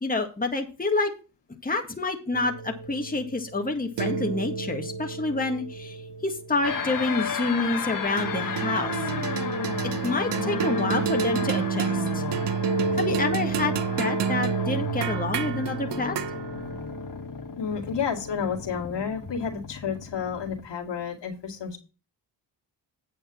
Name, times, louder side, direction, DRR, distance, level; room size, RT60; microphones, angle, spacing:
voice 1, 0.0-1.1 1.6-9.5 10.0-12.3 12.9-16.2, left 3 dB, 20° left, 2 dB, 1.9 m, -28 dB
sound 1, 2.3-7.0 8.2-18.7, right 5 dB, 70° right, 0.9 m, -30 dB
sound 2, 6.6-20.6, left 6 dB, 45° left, 1.5 m, -34 dB
voice 2, 17.6-21.8, left 6 dB, 70° left, 1 dB, 2.3 m, -31 dB
9.3 x 5.3 x 6.0 m, 0.33 s
cardioid pair, 60°, 45 cm